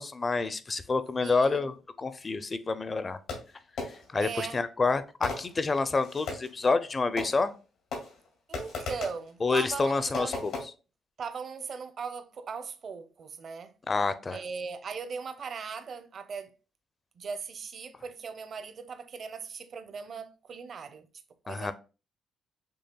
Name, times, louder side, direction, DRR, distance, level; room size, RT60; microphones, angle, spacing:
voice 1, 0.0-3.2 4.1-7.5 9.4-10.5 13.9-14.4 21.5-21.7, left 3 dB, 30° left, 0.5 m, -28 dB
voice 2, 1.2-1.7 4.1-4.6 8.5-10.4 11.2-13.7 14.3-16.5 17.2-21.1 21.5-21.7, right 5 dB, 55° right, 0.6 m, -39 dB
Fireworks, 3.3-4.2 5.2-6.6 7.2-7.6 7.9-9.3 10.1-10.6, left 3 dB, 85° left, 2.1 m, -37 dB
6.8 x 3.1 x 2.2 m
cardioid pair, 90°, 0 cm